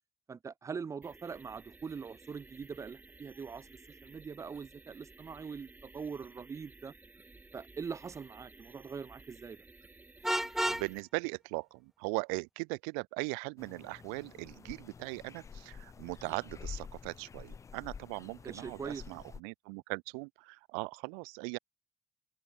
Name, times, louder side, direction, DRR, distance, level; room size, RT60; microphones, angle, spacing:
voice 1, 0.3-6.9 7.5-9.6 18.5-19.2, right 5 dB, 45° right, 3.4 m, -43 dB
sound 1, 1.0-11.0, right 3 dB, 25° right, 3.4 m, -56 dB
Vehicle horn car horn honking, 10.2-10.9, right 1 dB, 5° right, 1.4 m, -30 dB
voice 2, 10.7-21.6, right 40 dB or more, 75° right, 0.6 m, -39 dB
sound 2, 13.6-19.4, left 6 dB, 45° left, 2.9 m, -49 dB
figure-of-eight pair, 40°, 7 cm